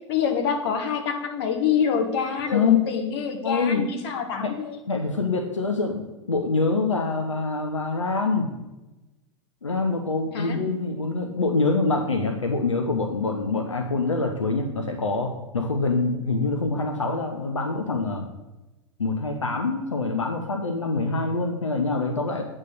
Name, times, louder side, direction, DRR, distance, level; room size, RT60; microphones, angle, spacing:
voice 1, 0.1-4.8 10.3-10.6, left 7 dB, 60° left, 5 dB, 1.3 m, -26 dB
voice 2, 2.5-2.8 3.4-3.8 4.4-4.5 4.9-8.5 9.6-18.2 19.0-22.4, left 3 dB, 90° left, 3 dB, 0.7 m, -25 dB
8.2 x 3.7 x 6.5 m, 1.0 s
figure-of-eight pair, 90°, 15 cm